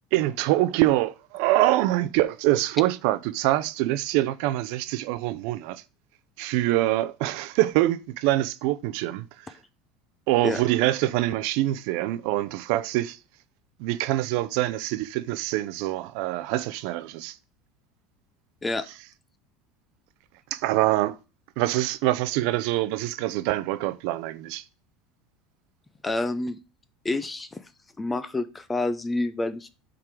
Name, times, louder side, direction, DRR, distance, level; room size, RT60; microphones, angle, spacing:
voice 1, 0.1-5.8 6.4-9.6 10.3-13.2 13.8-17.4 20.5-21.2 21.6-24.6, right 16 dB, 60° right, 0.5 m, -25 dB
voice 2, 26.0-26.6 27.0-27.6 28.0-29.7, left 2 dB, 10° left, 0.4 m, -28 dB
7.5 x 3.8 x 4.7 m
cardioid pair, 170°, 0 cm